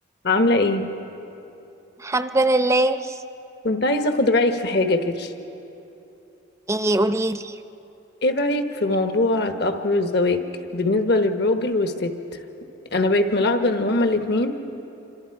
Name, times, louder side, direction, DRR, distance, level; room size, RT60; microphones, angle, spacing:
voice 1, 0.2-1.0 3.6-5.3 8.2-10.4 10.7-12.1 12.9-14.6, left 2 dB, 60° left, 6 dB, 1.3 m, -21 dB
voice 2, 2.0-3.2 6.7-7.6, right 2 dB, 15° right, 10 dB, 0.6 m, -21 dB
27.5 x 25.5 x 4.8 m, 2.9 s
head